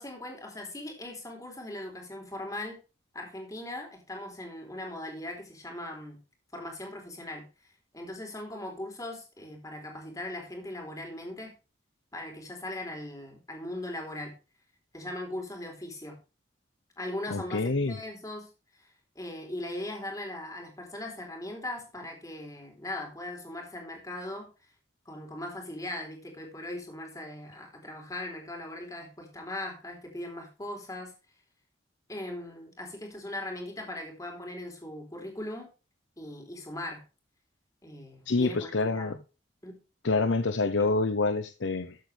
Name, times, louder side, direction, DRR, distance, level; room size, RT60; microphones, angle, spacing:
voice 1, 0.0-2.8 3.1-6.2 6.5-11.5 12.1-14.3 14.9-16.2 17.0-18.9 19.2-24.5 25.1-31.1 32.1-35.7 36.2-37.0 37.8-39.2 39.6-39.8 40.8-40.9, left 1 dB, 20° left, 3.7 m, -39 dB
voice 2, 17.3-18.0 38.3-39.2 40.0-42.0, left 3 dB, 85° left, 0.8 m, -27 dB
14.0 x 8.0 x 3.4 m
head